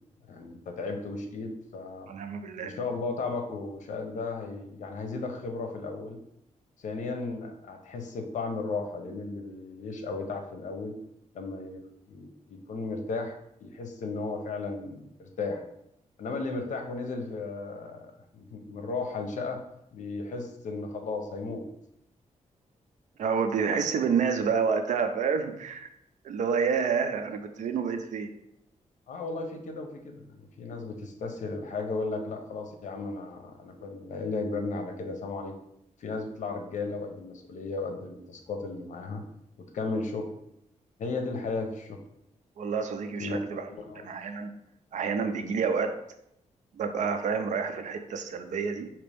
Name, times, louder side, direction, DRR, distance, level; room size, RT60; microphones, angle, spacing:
voice 1, 0.3-2.1 2.6-6.2 6.8-10.9 11.3-15.6 16.2-19.6 19.9-21.7 29.1-35.6 36.0-39.2 39.6-40.3 41.0-42.0 43.2-43.4 43.7-44.1, left 3 dB, 75° left, 4 dB, 0.7 m, -35 dB
voice 2, 2.1-2.7 23.2-25.9 26.2-28.3 42.6-43.7 44.0-44.6 44.9-46.0 46.7-48.9, right 6 dB, 70° right, 7 dB, 0.5 m, -29 dB
5.1 x 2.9 x 3.4 m, 0.77 s
wide cardioid pair, 125°, 13 cm